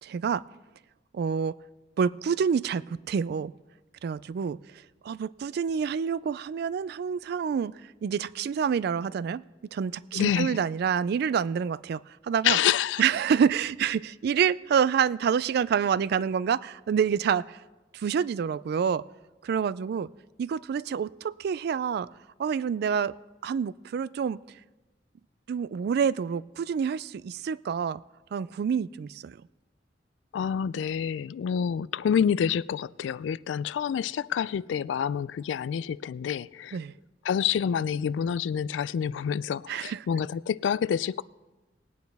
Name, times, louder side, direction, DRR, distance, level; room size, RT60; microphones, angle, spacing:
voice 1, 0.0-0.4 1.1-1.5 2.0-3.5 4.0-4.6 5.0-7.7 8.0-9.4 9.7-12.6 13.0-17.6 17.9-19.0 19.4-20.1 20.4-22.1 22.4-23.1 23.4-24.4 25.5-28.0 28.3-29.4 36.7-36.9 39.7-40.1, right 7 dB, 60° right, 19 dB, 0.3 m, -27 dB
voice 2, 10.1-10.6 12.4-13.0 30.3-36.8 37.2-41.2, left 8 dB, 85° left, 20 dB, 0.3 m, -27 dB
20.0 x 9.3 x 3.5 m, 1.2 s
head